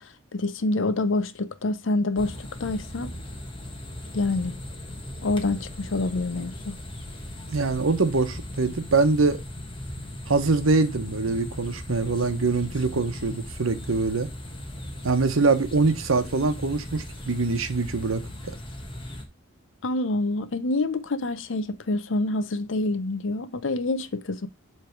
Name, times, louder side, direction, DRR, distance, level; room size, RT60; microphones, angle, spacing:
voice 1, 0.0-3.1 4.1-4.5 5.2-6.7 19.8-24.5, left 2 dB, 70° left, 0.7 m, -27 dB
sound 1, 2.2-19.2, left 1 dB, 25° left, 1.2 m, -38 dB
voice 2, 7.5-9.4 10.3-14.3 15.0-18.5, right 3 dB, 90° right, 1.0 m, -24 dB
8.3 x 3.4 x 4.4 m
head